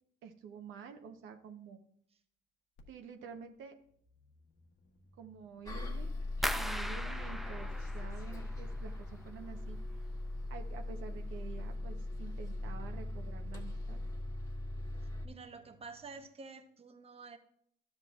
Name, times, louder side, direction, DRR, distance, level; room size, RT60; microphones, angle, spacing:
voice 1, 0.2-1.8 2.9-3.8 5.2-6.1 6.5-10.1 10.5-14.0, right 6 dB, 85° right, 4 dB, 0.9 m, -49 dB
sound 1, 2.8-2.9 3.1-16.2, equal, 80° left, 1.3 m, -65 dB
Bus, 5.7-15.3, left 2 dB, 15° left, 1.4 m, -40 dB
sound 2, 6.4-9.3 9.6-10.3 10.6-11.1 11.5-11.6, equal, ahead, 0.4 m, -40 dB
voice 2, 15.2-17.4, right 4 dB, 30° right, 8 dB, 0.8 m, -49 dB
12.0 x 7.6 x 2.4 m, 0.66 s
cardioid pair, 90°, 20 cm